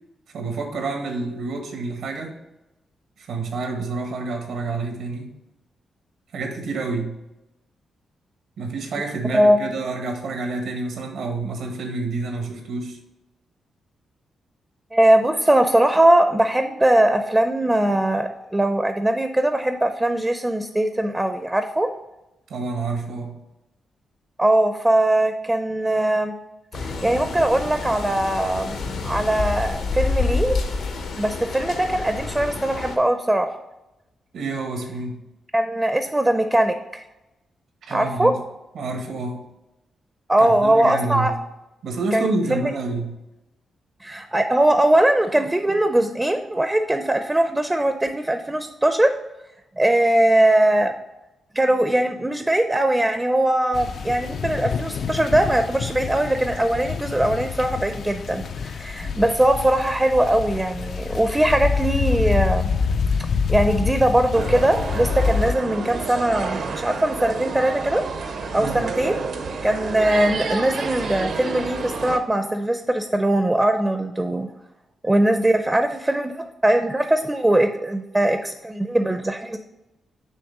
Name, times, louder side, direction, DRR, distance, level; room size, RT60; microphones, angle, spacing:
voice 1, 0.3-2.4 3.2-5.3 6.3-7.2 8.6-13.0 22.5-23.4 34.3-35.2 37.8-38.4 38.7-39.4 40.4-41.3 41.8-43.2 59.0-59.2 68.6-68.8, right 3 dB, 85° right, 3 dB, 1.5 m, -28 dB
voice 2, 14.9-21.9 24.4-26.3 26.7-30.6 31.2-33.6 35.5-37.0 37.9-38.3 40.3-41.3 42.1-42.7 44.0-49.1 49.8-50.9 51.5-62.7 63.5-68.0 68.5-69.2 69.6-74.5 75.0-79.6, right 1 dB, 15° right, 7 dB, 0.5 m, -20 dB
sound 1, 26.7-33.0, left 4 dB, 80° left, 0.9 m, -28 dB
sound 2, 53.7-65.6, left 6 dB, 55° left, 0.3 m, -26 dB
sound 3, 64.3-72.2, right 4 dB, 65° right, 0.7 m, -29 dB
6.4 x 3.3 x 6.0 m, 0.94 s
cardioid pair, 105°, 0 cm